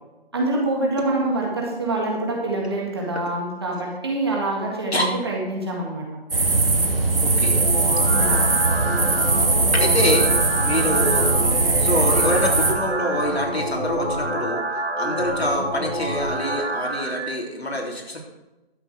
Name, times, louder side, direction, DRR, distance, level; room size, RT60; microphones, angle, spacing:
voice 1, 0.3-6.1 8.1-8.5, right 2 dB, 25° right, -1 dB, 2.0 m, -25 dB
sound 1, 6.3-12.7, right 3 dB, 60° right, 2.1 m, -20 dB
voice 2, 7.2-7.6 9.7-10.3 10.6-11.3 11.8-14.7 15.0-18.2, left 1 dB, 80° left, 0 dB, 3.5 m, -25 dB
sound 2, 7.3-17.3, right 1 dB, 80° right, 2.8 m, -27 dB
12.5 x 7.0 x 6.3 m, 1.0 s
figure-of-eight pair, 175°, 31 cm